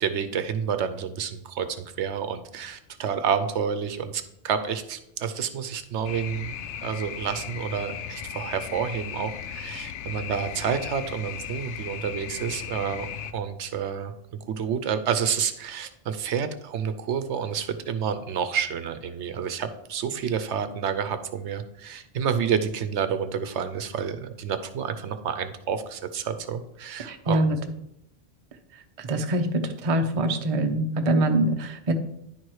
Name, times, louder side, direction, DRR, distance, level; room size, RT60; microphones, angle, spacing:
voice 1, 0.0-14.1 14.5-27.4, right 7 dB, 70° right, 10 dB, 0.9 m, -29 dB
sound 1, 6.0-13.3, left 8 dB, 75° left, 0.9 m, -36 dB
voice 2, 27.0-27.6 29.0-31.9, right 1 dB, 35° right, 6 dB, 0.7 m, -24 dB
10.5 x 4.5 x 4.7 m, 0.79 s
omnidirectional pair, 1.2 m